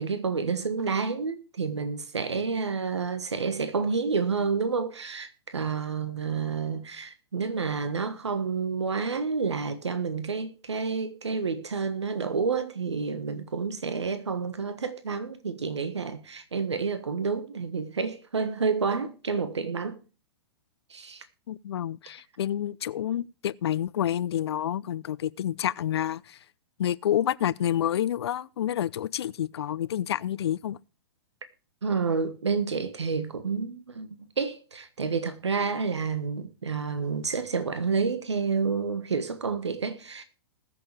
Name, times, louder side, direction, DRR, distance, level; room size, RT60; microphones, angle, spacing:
voice 1, 0.0-20.0 20.9-21.2 31.8-40.2, right 5 dB, 85° right, 1.3 m, -29 dB
voice 2, 21.5-26.4 26.8-30.8, left 11 dB, 70° left, 0.6 m, -28 dB
20.5 x 7.0 x 3.3 m
hypercardioid pair, 115°, 14 cm